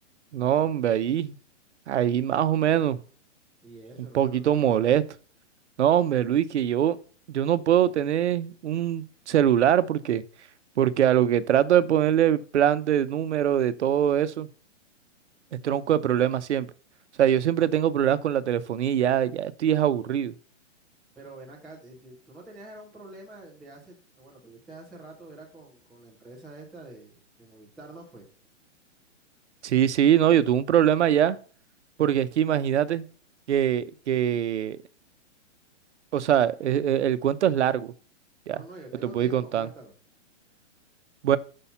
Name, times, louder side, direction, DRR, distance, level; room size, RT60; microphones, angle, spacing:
voice 1, 0.3-1.4 1.9-3.0 4.1-5.0 5.8-7.0 7.3-10.2 10.8-14.5 15.6-16.7 17.2-20.3 29.6-31.4 32.0-33.1 33.5-34.8 36.1-37.9 38.5-38.6 39.0-39.7 41.2-41.4, right 10 dB, 65° right, 0.8 m, -23 dB
voice 2, 3.6-4.9 21.2-28.3 38.5-39.9, right 2 dB, ahead, 0.4 m, -46 dB
5.8 x 5.5 x 5.5 m
hypercardioid pair, 160°, 37 cm